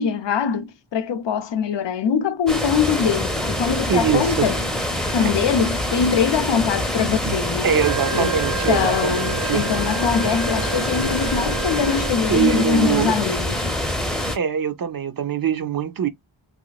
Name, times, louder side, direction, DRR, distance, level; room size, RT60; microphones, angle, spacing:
voice 1, 0.0-4.6 5.1-7.7 8.1-8.4 8.7-13.7, left 7 dB, 70° left, 0.6 m, -22 dB
sound 1, 2.5-14.4, left 1 dB, ahead, 0.6 m, -25 dB
voice 2, 3.9-4.5 5.2-5.3 7.2-7.4 7.6-9.7 12.3-13.1 14.3-16.1, right 8 dB, 50° right, 0.5 m, -23 dB
Wind instrument woodwind instrument, 7.8-12.5, right 6 dB, 85° right, 1.0 m, -31 dB
3.2 x 3.0 x 2.2 m
wide cardioid pair, 115°, 45 cm